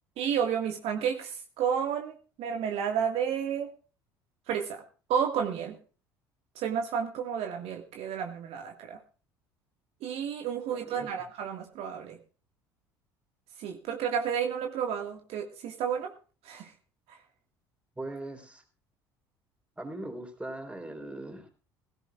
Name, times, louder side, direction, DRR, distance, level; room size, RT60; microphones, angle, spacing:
voice 1, 0.2-3.7 4.5-4.8 5.1-5.8 6.6-9.0 10.0-12.2 13.6-16.1 16.4-16.7, right 8 dB, 60° right, 3 dB, 1.8 m, -31 dB
voice 2, 10.7-11.2 18.0-18.6 19.8-21.5, right 2 dB, 10° right, 3 dB, 3.8 m, -40 dB
17.0 x 15.5 x 2.4 m, 0.36 s
hypercardioid pair, 60°, 12 cm